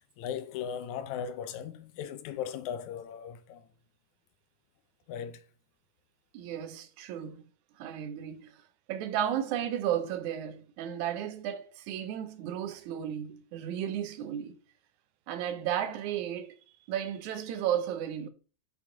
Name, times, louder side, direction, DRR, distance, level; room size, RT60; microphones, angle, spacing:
voice 1, 0.0-3.7 5.1-5.4, left 8 dB, 80° left, 2.1 m, -38 dB
voice 2, 6.3-7.4 7.8-8.6 8.9-14.6 15.3-16.6 16.9-18.3, right 10 dB, 85° right, 2.2 m, -34 dB
7.1 x 6.5 x 3.9 m
omnidirectional pair, 3.4 m